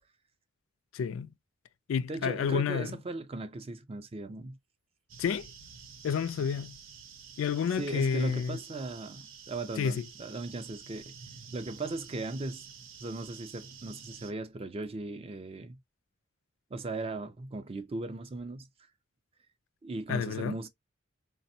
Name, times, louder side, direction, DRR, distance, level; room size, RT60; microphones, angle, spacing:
voice 1, 0.9-1.3 1.9-2.9 5.2-5.5 6.0-6.8 7.4-8.6 9.8-10.1 20.1-20.6, left 7 dB, 70° left, 0.3 m, -30 dB
voice 2, 2.1-4.6 7.8-11.1 11.5-12.7 13.0-15.8 16.7-18.7 19.8-20.7, right 2 dB, 30° right, 0.4 m, -38 dB
sound 1, 5.1-14.3, right 6 dB, 70° right, 0.7 m, -50 dB
4.1 x 2.0 x 2.6 m
head